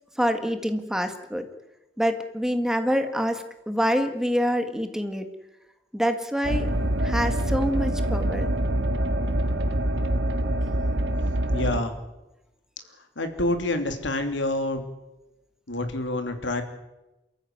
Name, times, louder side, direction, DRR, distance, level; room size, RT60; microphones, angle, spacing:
voice 1, 0.2-1.4 2.0-5.3 5.9-6.7 7.0-8.5, equal, 5° right, 7 dB, 1.7 m, -26 dB
sound 1, 6.4-11.8, right 1 dB, 70° right, 1.9 m, -25 dB
voice 2, 11.5-11.9 13.2-14.8 15.7-16.6, left 2 dB, 80° left, 7 dB, 3.0 m, -27 dB
28.0 x 14.0 x 9.4 m, 0.99 s
head